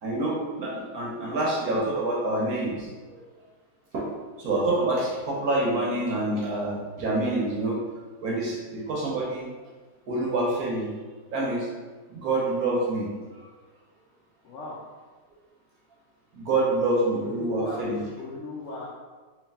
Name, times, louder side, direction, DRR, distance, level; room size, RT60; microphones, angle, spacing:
voice 1, 0.0-3.2 3.9-4.1 4.4-7.8 8.2-9.5 10.1-10.9 11.3-11.7 12.1-13.1 13.3-13.5 16.3-18.0, right 2 dB, 60° right, -4 dB, 1.1 m, -27 dB
voice 2, 14.4-14.8 17.1-18.9, left 2 dB, 75° left, -5 dB, 0.7 m, -38 dB
3.1 x 3.0 x 3.4 m, 1.4 s
omnidirectional pair, 2.0 m